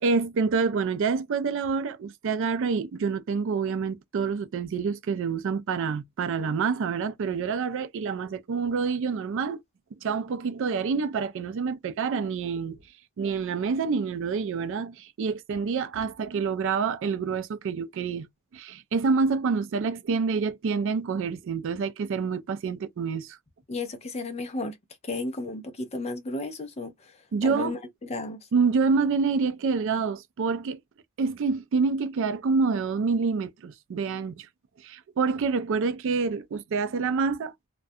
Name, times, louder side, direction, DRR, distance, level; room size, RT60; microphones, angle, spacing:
voice 1, 0.0-9.6 10.0-12.8 13.2-18.3 18.5-23.4 27.3-27.8 28.5-30.8 31.2-34.5 34.8-37.5, right 5 dB, 60° right, 0.4 m, -27 dB
voice 2, 23.7-24.8 25.0-28.4, left 2 dB, 30° left, 0.5 m, -34 dB
2.3 x 2.1 x 2.6 m
head